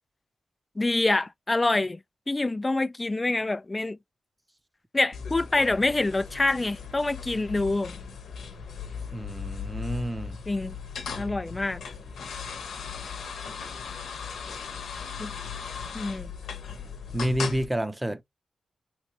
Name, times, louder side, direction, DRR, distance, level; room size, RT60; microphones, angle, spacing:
voice 1, 0.8-2.0 2.3-4.0 4.9-7.9 10.5-10.7 11.2-11.8 15.2-15.3 15.9-16.3, left 2 dB, 30° left, 0.4 m, -26 dB
sound 1, 5.1-17.6, left 6 dB, 80° left, 0.9 m, -37 dB
voice 2, 9.1-10.4 16.7-16.8 17.1-18.2, right 1 dB, 15° right, 0.6 m, -29 dB
3.2 x 3.0 x 2.9 m
supercardioid pair, 45°, 0 cm